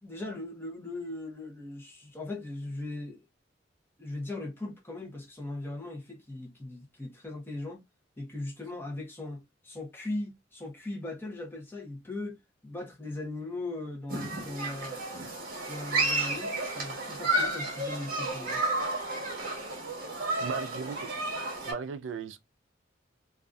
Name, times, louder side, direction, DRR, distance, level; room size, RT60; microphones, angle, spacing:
voice 1, 0.0-3.2 4.0-7.8 8.2-15.0 15.7-18.6, left 2 dB, 10° left, 0.6 m, -39 dB
Human group actions, 14.1-21.7, right 2 dB, 50° right, 1.0 m, -32 dB
voice 2, 20.4-21.1 21.7-22.4, right 6 dB, 70° right, 0.3 m, -36 dB
2.5 x 2.3 x 2.2 m
head